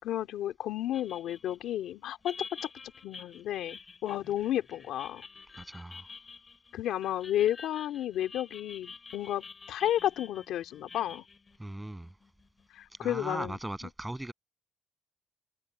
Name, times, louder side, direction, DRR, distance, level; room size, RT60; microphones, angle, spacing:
voice 1, 0.0-2.7 3.0-5.3 6.7-11.2 12.7-13.9, left 12 dB, 80° left, 2.5 m, -32 dB
sound 1, 0.9-12.7, left 4 dB, 30° left, 7.4 m, -48 dB
voice 2, 5.6-6.1 11.6-12.1 13.0-14.3, right 1 dB, 10° right, 7.9 m, -38 dB
cardioid pair, 100°, 0 cm